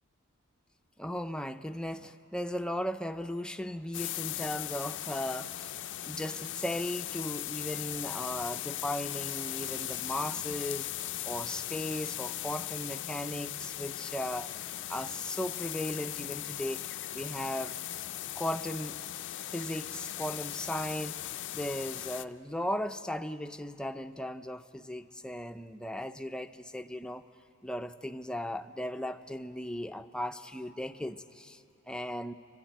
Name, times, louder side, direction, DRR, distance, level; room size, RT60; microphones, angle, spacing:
voice 1, 1.0-5.8 6.1-10.9 11.2-16.8 17.1-17.8 18.3-19.0 19.5-27.2 27.6-32.3, left 1 dB, 5° left, 8 dB, 0.5 m, -37 dB
sound 1, 3.9-22.2, left 13 dB, 60° left, 0.5 m, -38 dB
29.0 x 12.5 x 9.2 m, 2.8 s
head